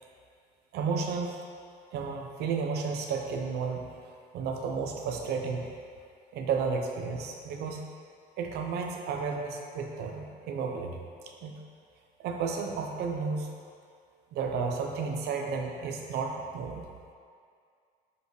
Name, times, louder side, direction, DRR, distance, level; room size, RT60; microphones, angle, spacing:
voice 1, 0.7-1.4 1.9-3.8 4.3-5.7 6.3-7.9 8.4-11.1 11.4-11.6 12.2-13.5 14.3-16.8, right 5 dB, 75° right, 2 dB, 0.7 m, -32 dB
6.9 x 4.8 x 3.2 m, 2.2 s
cardioid pair, 110°, 17 cm